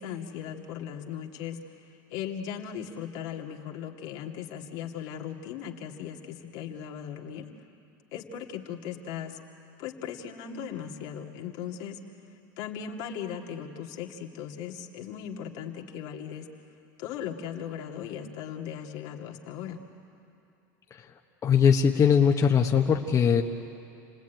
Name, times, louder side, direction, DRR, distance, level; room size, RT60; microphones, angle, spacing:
voice 1, 0.0-1.6 2.1-7.5 8.1-9.4 9.8-12.0 12.6-16.5 17.0-19.8, left 8 dB, 70° left, 1 dB, 2.3 m, -38 dB
voice 2, 21.4-23.4, left 7 dB, 35° left, 2 dB, 1.3 m, -21 dB
29.0 x 19.0 x 9.3 m, 2.6 s
supercardioid pair, 105°, 10 cm